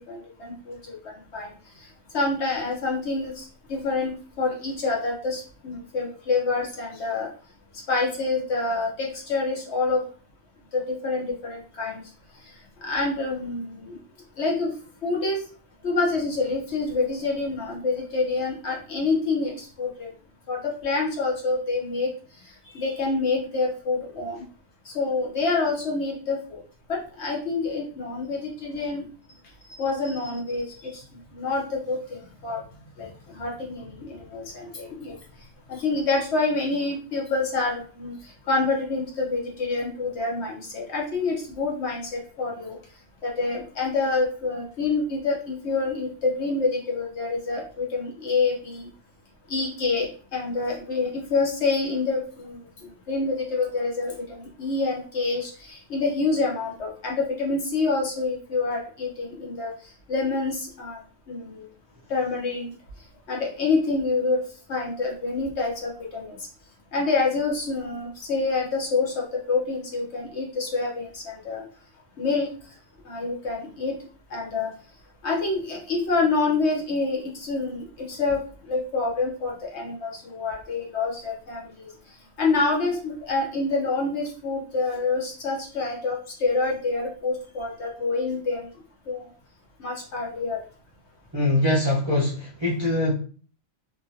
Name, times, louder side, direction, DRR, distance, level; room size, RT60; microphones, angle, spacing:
voice 1, 0.0-1.5 1.8-1.9 2.1-7.3 7.9-10.0 10.7-12.0 12.8-14.0 14.4-14.7 15.0-15.4 15.8-20.1 20.5-22.1 22.7-24.4 24.9-26.6 26.9-29.0 29.7-31.0 31.3-32.6 33.0-35.1 35.7-42.8 43.2-48.9 49.5-52.6 53.1-59.7 60.1-61.0 61.3-61.6 62.1-62.7 63.3-64.4 64.7-66.4 66.9-71.6 72.2-72.5 73.0-73.9 74.3-74.7 75.2-78.4 78.7-81.9 82.4-88.7 89.1-89.3 89.8-90.6, left 3 dB, 60° left, 1.1 m, -27 dB
voice 2, 91.3-93.1, left 1 dB, 25° right, 0.6 m, -23 dB
2.9 x 2.6 x 2.7 m
omnidirectional pair, 1.4 m